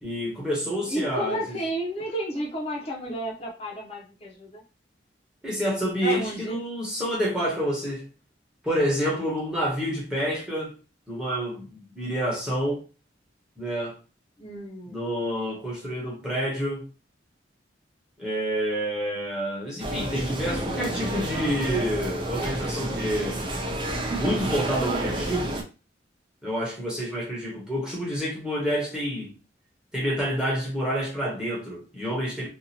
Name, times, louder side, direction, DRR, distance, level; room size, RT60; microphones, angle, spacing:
voice 1, 0.0-1.6 5.4-8.0 8.6-10.8 11.1-12.8 13.6-13.9 14.9-16.8 18.2-23.4 24.1-25.6 26.4-29.3 29.9-32.5, equal, 5° right, 1.0 m, -28 dB
voice 2, 0.9-4.6 6.0-6.6 14.4-15.0, equal, 35° left, 0.7 m, -32 dB
sound 1, 19.8-25.6, right 1 dB, 25° right, 0.5 m, -30 dB
2.6 x 2.4 x 2.9 m
head